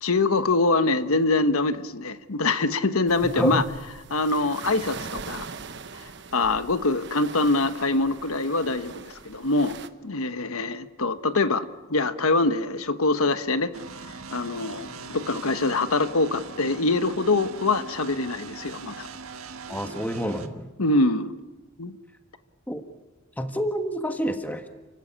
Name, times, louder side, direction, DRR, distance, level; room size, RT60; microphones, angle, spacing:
voice 1, 0.0-3.6 4.1-5.5 6.3-9.8 10.0-13.7 14.3-19.1 20.8-21.3 21.8-22.0, left 3 dB, 75° left, 11 dB, 1.2 m, -24 dB
sound 1, 3.1-9.9, right 5 dB, 55° right, 1.1 m, -41 dB
Dog, 9.3-9.4 10.1-10.7 11.2-11.3 14.7-15.7 17.2-17.7 20.6-21.2, left 1 dB, 55° left, 6.8 m, -55 dB
sound 2, 13.7-20.5, right 4 dB, 70° right, 1.6 m, -41 dB
voice 2, 19.7-20.7 22.7-22.8 23.4-24.7, equal, 5° left, 6 dB, 1.5 m, -28 dB
29.5 x 16.5 x 9.9 m, 1.2 s
head